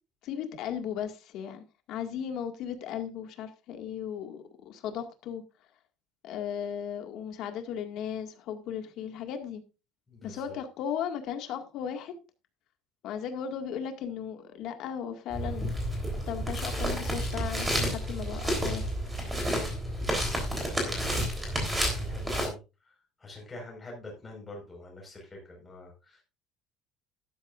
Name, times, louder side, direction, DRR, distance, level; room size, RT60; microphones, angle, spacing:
voice 1, 0.2-5.4 6.2-9.6 10.2-12.1 13.0-15.7 16.3-18.9, left 8 dB, 50° left, 2.0 m, -36 dB
voice 2, 10.1-10.6 19.4-19.8 20.4-26.2, left 2 dB, 10° left, 5.1 m, -46 dB
sound 1, 15.3-22.5, equal, 10° right, 3.6 m, -30 dB
13.0 x 12.0 x 2.6 m
cardioid pair, 180°, 0 cm